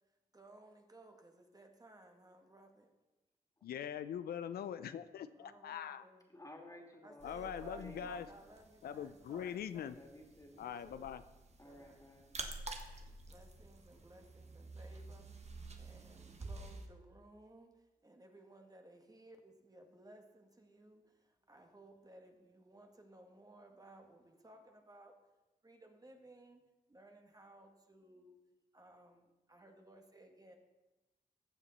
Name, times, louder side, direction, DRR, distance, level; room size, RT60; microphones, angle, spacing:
voice 1, 0.3-2.9 5.4-6.3 7.0-10.0 10.6-11.1 11.6-12.0 13.3-15.3 15.8-25.2 25.6-26.6 26.9-28.4 28.7-30.6, right 2 dB, 25° right, 4 dB, 1.6 m, -59 dB
voice 2, 3.6-6.0 7.2-8.3 8.8-10.0 10.6-11.2, left 9 dB, 90° left, 12 dB, 0.4 m, -42 dB
voice 3, 6.3-8.2 9.9-10.6 11.6-12.4, left 1 dB, 20° left, 1 dB, 2.6 m, -55 dB
sound 1, 7.2-16.9, right 3 dB, 45° right, 1.4 m, -50 dB
14.5 x 7.3 x 4.1 m, 1.1 s
cardioid pair, 65°, 15 cm